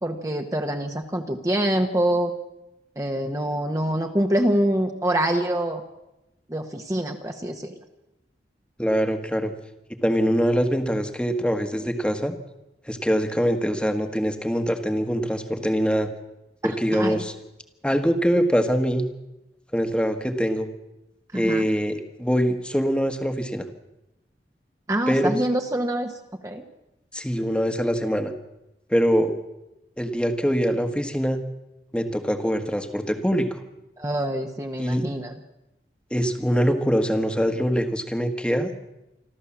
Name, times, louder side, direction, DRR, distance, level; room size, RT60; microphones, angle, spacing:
voice 1, 0.0-2.3 3.0-5.8 6.5-7.7 16.6-17.2 21.3-21.7 24.9-26.1 26.4-26.6 34.0-35.3, right 1 dB, 20° right, 4 dB, 1.2 m, -25 dB
voice 2, 8.8-9.5 10.0-12.3 12.9-16.1 16.6-17.3 17.8-19.0 19.7-20.7 21.3-23.7 25.1-25.4 27.1-28.3 28.9-29.3 30.0-31.4 31.9-33.6 34.8-35.1 36.1-38.7, equal, 5° left, 6 dB, 1.4 m, -23 dB
26.5 x 13.0 x 7.3 m, 0.95 s
head